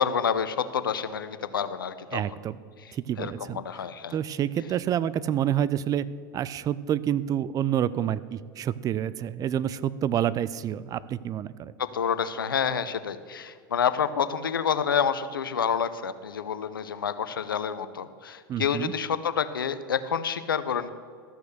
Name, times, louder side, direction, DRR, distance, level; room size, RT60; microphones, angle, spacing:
voice 1, 0.0-2.2 2.8-4.2 11.8-20.9, left 7 dB, 85° left, 12 dB, 0.7 m, -28 dB
voice 2, 2.1-2.6 2.9-3.6 4.1-6.0 6.3-11.7 18.5-18.9, right 10 dB, 30° right, 17 dB, 0.5 m, -28 dB
13.5 x 6.3 x 6.7 m, 2.1 s
hypercardioid pair, 85°, 11 cm